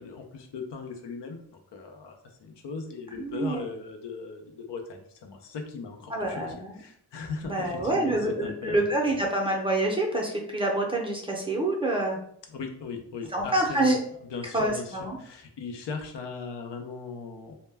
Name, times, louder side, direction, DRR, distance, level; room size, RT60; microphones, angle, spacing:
voice 1, 0.0-6.4 6.7-8.8 12.5-13.9 14.3-17.5, left 4 dB, 80° left, 4 dB, 0.6 m, -38 dB
voice 2, 3.1-3.6 6.1-6.8 7.4-12.2 13.3-14.0 14.5-15.2, right 2 dB, 15° right, -1 dB, 0.5 m, -27 dB
2.1 x 2.1 x 3.3 m, 0.65 s
wide cardioid pair, 95°, 41 cm